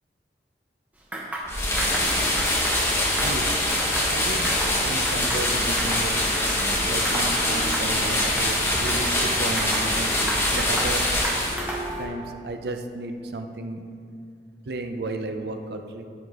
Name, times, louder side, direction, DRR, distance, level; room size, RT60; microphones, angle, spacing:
sound 1, 1.1-1.5 1.8-2.1 2.4-2.8 3.1-4.1 4.4-4.8 5.1-6.1 6.3-6.7 7.0-7.3 7.6-7.9 8.2-9.2 9.6-10.9 11.2-11.9, right 1 dB, 10° right, 0.9 m, -33 dB
sound 2, 1.5-11.9, left 1 dB, 15° left, 1.0 m, -24 dB
voice 1, 4.0-6.2 6.9-11.1 12.0-13.8 14.7-16.0, right 2 dB, 70° right, 6 dB, 0.6 m, -33 dB
sound 3, 6.3-12.0, right 1 dB, 30° right, 1.2 m, -39 dB
13.0 x 5.0 x 3.6 m, 2.3 s
head